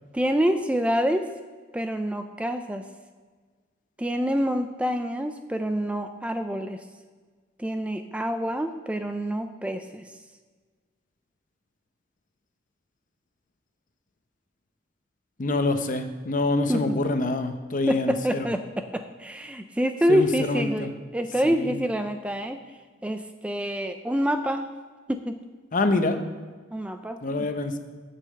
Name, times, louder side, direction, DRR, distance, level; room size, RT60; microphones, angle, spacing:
voice 1, 0.1-1.3 1.7-2.9 4.0-6.8 7.6-10.1 16.7-17.0 17.9-22.6 23.0-24.7 25.1-25.4 26.7-27.5, equal, 5° right, 7 dB, 0.3 m, -27 dB
voice 2, 15.4-18.5 20.1-20.9 21.4-21.8 25.7-26.2 27.2-27.8, left 2 dB, 40° left, 8 dB, 0.7 m, -26 dB
8.4 x 5.6 x 7.5 m, 1.5 s
head